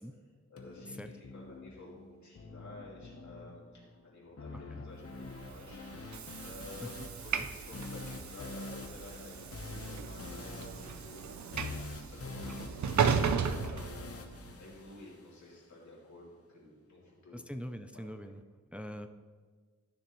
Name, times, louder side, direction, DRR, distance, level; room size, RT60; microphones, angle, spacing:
voice 1, 0.5-5.8 6.4-7.0 7.2-11.4 12.1-17.4, left 2 dB, 70° left, -5 dB, 2.8 m, -52 dB
sound 1, 0.6-15.6, left 3 dB, 50° left, 0.9 m, -46 dB
voice 2, 4.5-4.8 6.8-7.1 7.3-7.5 17.3-18.4 18.7-19.1, equal, 5° right, 8 dB, 0.4 m, -43 dB
Train / Sliding door, 5.3-14.6, right 6 dB, 70° right, 0.5 m, -35 dB
12.0 x 6.9 x 3.1 m, 1.5 s
wide cardioid pair, 115°, 29 cm